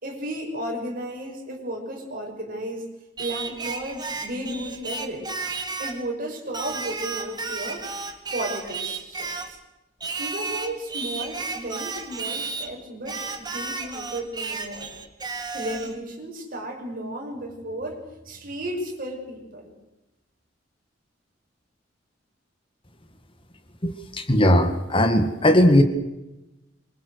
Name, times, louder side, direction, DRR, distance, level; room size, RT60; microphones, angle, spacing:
voice 1, 0.0-2.9 3.2-5.3 5.8-7.9 8.3-9.6 10.2-14.9 15.5-19.7, right 1 dB, 50° right, 2 dB, 6.3 m, -34 dB
Singing, 3.2-6.0 6.5-9.6 10.0-12.7 13.1-16.0, right 4 dB, 25° right, 2.2 m, -33 dB
voice 2, 23.8-25.8, left 1 dB, 30° left, 7 dB, 1.9 m, -18 dB
26.0 x 24.5 x 6.5 m, 0.97 s
head